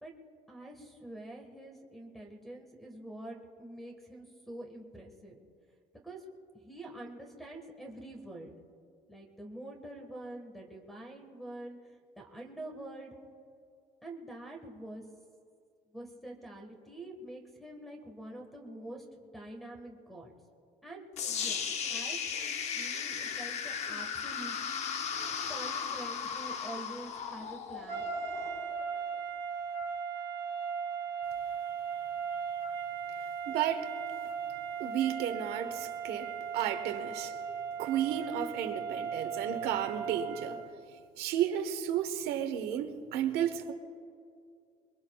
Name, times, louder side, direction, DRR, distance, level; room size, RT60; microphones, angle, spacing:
voice 1, 0.5-5.4 6.0-6.2 6.5-8.5 9.1-13.2 14.0-15.0 15.9-20.3 20.8-21.6 21.9-24.9 25.5-28.1, right 1 dB, ahead, 2 dB, 1.6 m, -46 dB
sound 1, 21.2-29.2, left 7 dB, 45° left, 0.9 m, -36 dB
sound 2, 27.9-40.7, right 7 dB, 30° right, 1.2 m, -37 dB
voice 2, 33.5-33.9 34.8-37.3 37.8-40.6 41.2-43.7, right 10 dB, 80° right, 7 dB, 1.3 m, -33 dB
27.0 x 22.0 x 2.4 m, 2.3 s
cardioid pair, 170°, 16 cm